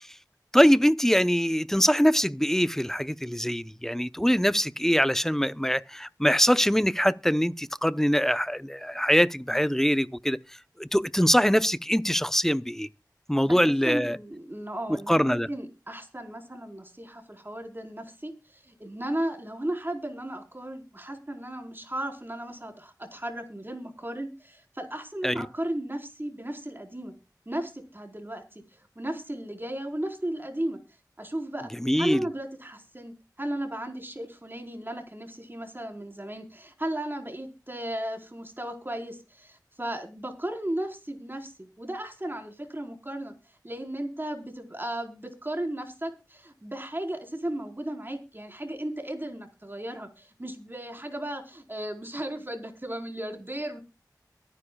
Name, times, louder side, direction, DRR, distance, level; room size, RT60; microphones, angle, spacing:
voice 1, 0.5-10.4 10.8-12.9 13.3-14.2 15.1-15.5 25.2-25.5 31.8-32.3, equal, 5° left, 0.8 m, -23 dB
voice 2, 13.4-27.1 27.5-28.4 29.0-30.8 31.2-31.7 32.0-43.3 43.6-53.8, right 1 dB, 30° right, 4.5 m, -35 dB
23.0 x 10.0 x 2.3 m
wide cardioid pair, 45°, 7 cm